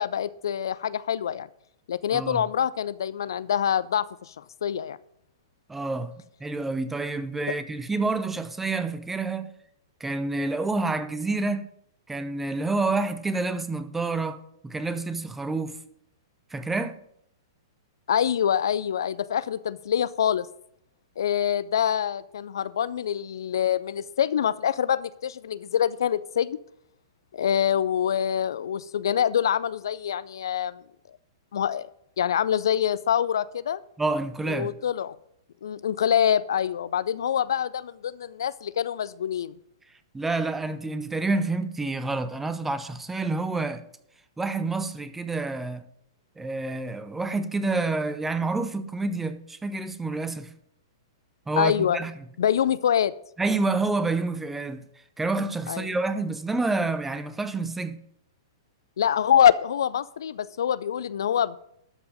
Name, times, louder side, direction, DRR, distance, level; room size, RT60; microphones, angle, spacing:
voice 1, 0.0-1.5 1.9-5.0 18.1-20.5 21.2-26.6 27.3-30.8 31.5-31.9 32.2-33.8 34.5-35.1 35.6-39.6 51.6-52.0 52.4-53.1 55.7-55.9 59.0-61.6, left 9 dB, 65° left, 0.3 m, -25 dB
voice 2, 2.1-2.4 5.7-6.1 6.4-9.5 10.0-11.7 12.1-15.8 16.5-17.0 34.0-34.7 40.1-43.8 44.4-45.9 46.4-50.6 51.5-52.1 53.4-54.8 55.2-58.0, right 3 dB, 10° right, 0.6 m, -28 dB
12.5 x 4.6 x 5.1 m
figure-of-eight pair, 110°, 2 cm